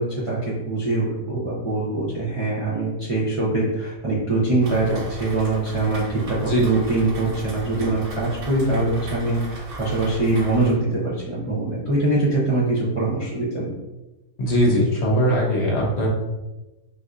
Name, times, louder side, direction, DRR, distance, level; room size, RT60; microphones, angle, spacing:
voice 1, 0.0-13.7, right 2 dB, 40° right, -8 dB, 0.5 m, -23 dB
Rain, 4.6-10.7, right 1 dB, 85° right, 1.3 m, -36 dB
voice 2, 14.4-16.1, equal, 55° left, -2 dB, 0.9 m, -20 dB
4.2 x 2.6 x 2.4 m, 1.1 s
omnidirectional pair, 1.5 m